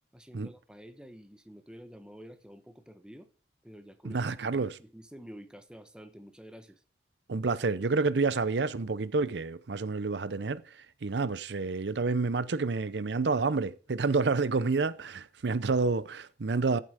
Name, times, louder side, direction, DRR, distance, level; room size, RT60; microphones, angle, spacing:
voice 1, 0.1-3.3 3.6-4.2 4.5-6.8, equal, 5° right, 1.1 m, -49 dB
voice 2, 4.0-4.8 7.3-16.8, right 4 dB, 75° right, 0.6 m, -29 dB
14.0 x 7.7 x 5.0 m
head